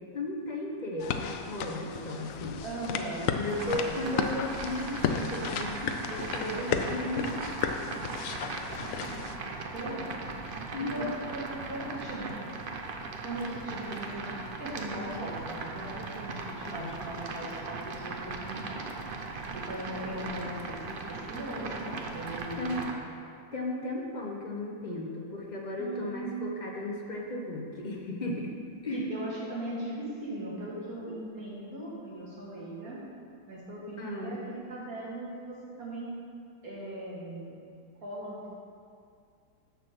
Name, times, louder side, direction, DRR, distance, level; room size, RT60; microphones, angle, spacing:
voice 1, 0.1-2.6 3.3-7.4 10.7-11.1 16.6-17.0 22.6-22.8 23.5-28.5 28.8-29.0 34.0-34.4, left 1 dB, 35° left, -1 dB, 0.7 m, -35 dB
sound 1, 1.0-9.4, left 6 dB, 75° left, 0.7 m, -34 dB
voice 2, 2.6-4.1 6.5-6.9 9.7-10.2 10.8-12.4 13.2-14.3 14.6-18.9 19.5-23.0 25.8-26.4 28.9-33.0 33.5-36.1 36.6-37.5 38.0-38.5, right 1 dB, 50° right, -6 dB, 2.6 m, -39 dB
sound 2, 3.4-22.9, right 3 dB, 80° right, 0.4 m, -38 dB
6.9 x 6.7 x 6.1 m, 2.4 s
omnidirectional pair, 1.9 m